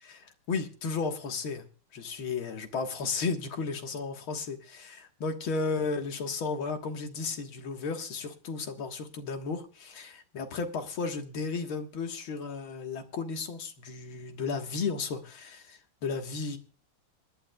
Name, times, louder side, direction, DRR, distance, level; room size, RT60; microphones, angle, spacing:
voice 1, 0.0-1.7 1.9-16.6, left 4 dB, 70° left, 5 dB, 2.3 m, -34 dB
26.5 x 11.0 x 2.3 m, 0.38 s
omnidirectional pair, 2.4 m